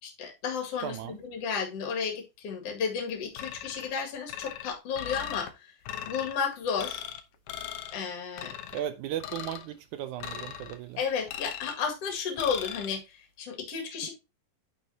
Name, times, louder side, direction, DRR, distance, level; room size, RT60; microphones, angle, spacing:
voice 1, 0.0-5.5 6.0-7.0 7.9-8.5 11.0-14.1, left 6 dB, 50° left, 2.9 m, -33 dB
voice 2, 0.8-1.2 8.7-11.0, right 11 dB, 80° right, 1.7 m, -36 dB
sound 1, 3.4-3.9 4.3-5.5 5.9-6.3 6.8-7.2 7.5-8.0 8.4-8.8 9.2-9.7 10.2-10.8 11.3-11.8 12.4-12.9, left 10 dB, 70° left, 1.9 m, -38 dB
9.4 x 6.6 x 2.8 m
omnidirectional pair, 4.0 m